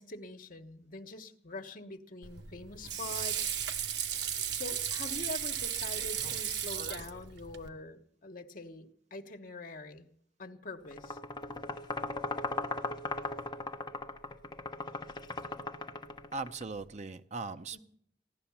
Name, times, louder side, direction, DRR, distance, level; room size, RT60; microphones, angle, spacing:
voice 1, 0.0-3.6 4.5-10.1 10.4-11.2 17.7-17.8, left 2 dB, 50° left, 5 dB, 1.3 m, -44 dB
Water / Sink (filling or washing), 2.2-7.7, right 9 dB, 80° right, 1.0 m, -35 dB
sound 1, 10.9-16.6, left 2 dB, 25° left, 1.0 m, -38 dB
voice 2, 16.3-17.8, right 3 dB, 40° right, 10 dB, 0.7 m, -39 dB
16.0 x 11.5 x 7.2 m, 0.64 s
head